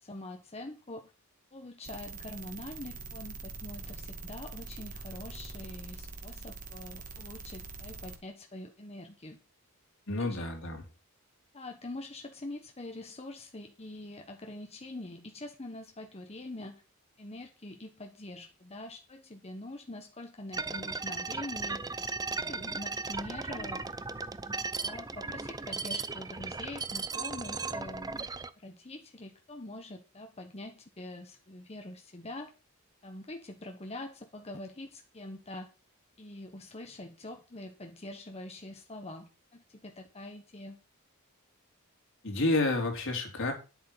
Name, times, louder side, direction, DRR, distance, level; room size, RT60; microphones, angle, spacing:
voice 1, 0.0-1.1 1.5-9.4 10.2-10.5 11.5-16.8 17.2-21.9 22.3-23.8 24.8-28.3 28.6-32.5 33.0-35.7 36.2-40.8, left 2 dB, 30° left, 4 dB, 1.2 m, -44 dB
sound 1, 1.8-8.2, right 3 dB, 40° right, 2.1 m, -44 dB
voice 2, 10.1-10.8 42.2-43.5, left 2 dB, 60° left, 2 dB, 3.7 m, -29 dB
sound 2, 20.5-28.5, right 4 dB, 15° right, 0.6 m, -36 dB
10.5 x 8.0 x 5.7 m, 0.32 s
head